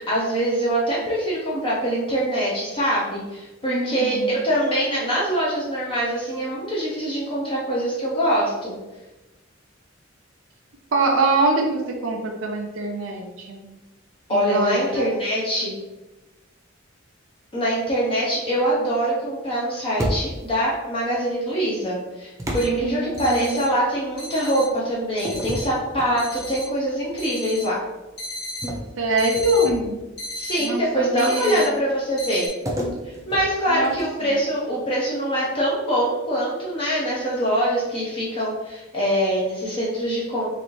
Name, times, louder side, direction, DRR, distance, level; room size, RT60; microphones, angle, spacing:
voice 1, 0.0-8.8 14.3-15.7 17.5-27.8 30.3-32.5 33.0-40.5, equal, 25° left, -5 dB, 0.6 m, -24 dB
voice 2, 3.6-4.3 10.9-13.6 14.3-15.1 22.8-23.6 29.0-30.0 30.6-31.6 33.7-33.9, right 2 dB, 80° right, 1 dB, 0.5 m, -24 dB
sound 1, 20.0-20.6 22.4-23.7 25.2-26.6 27.1-27.3 28.6-30.1 32.7-34.3, equal, 15° right, 0.5 m, -31 dB
sound 2, 22.5-22.6 23.2-23.6 24.2-24.6 25.2-25.6 26.2-26.6 27.2-27.6 28.2-28.7 29.2-29.7 30.2-30.7 31.2-31.7 32.2-32.5, left 1 dB, 55° left, 1.4 m, -34 dB
4.0 x 2.5 x 3.1 m, 1.1 s
head